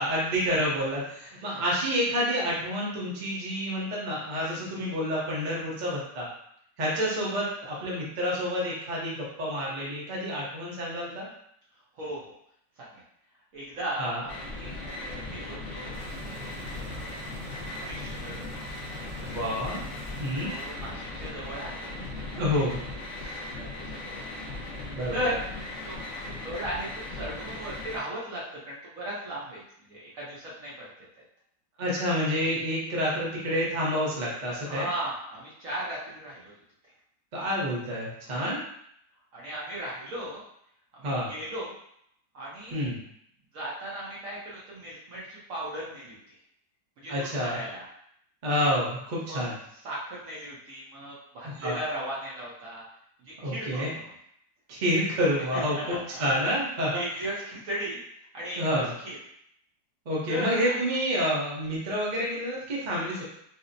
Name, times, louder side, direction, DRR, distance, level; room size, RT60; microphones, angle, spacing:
voice 1, 0.0-6.3 6.8-11.3 14.0-14.2 19.3-19.8 20.2-20.5 22.3-22.8 24.9-25.3 31.8-34.9 37.3-38.6 41.0-41.3 42.7-43.0 47.1-47.6 48.4-49.5 51.4-51.8 53.4-53.9 54.7-57.0 58.6-58.9 60.1-63.2, equal, 40° right, -5 dB, 0.6 m, -28 dB
voice 2, 11.9-12.3 12.8-13.0 13.5-16.0 16.7-17.4 17.7-18.6 20.4-22.0 22.3-22.4 23.2-24.3 25.1-25.4 25.8-26.0 26.4-29.6 29.9-30.9 34.7-36.5 38.3-38.5 39.3-40.4 40.9-41.7 42.3-42.9 43.5-46.2 47.0-47.9 49.3-49.4 49.8-52.8 53.2-54.1 55.5-56.2 56.9-58.0 58.3-59.2 60.3-60.7, right 1 dB, 60° right, -6 dB, 1.0 m, -37 dB
sound 1, 14.3-28.0, left 2 dB, 75° left, 0.5 m, -38 dB
sound 2, 15.9-20.9 21.2-21.3, right 1 dB, 80° right, 1.6 m, -45 dB
4.1 x 2.0 x 2.6 m, 0.71 s
omnidirectional pair, 1.9 m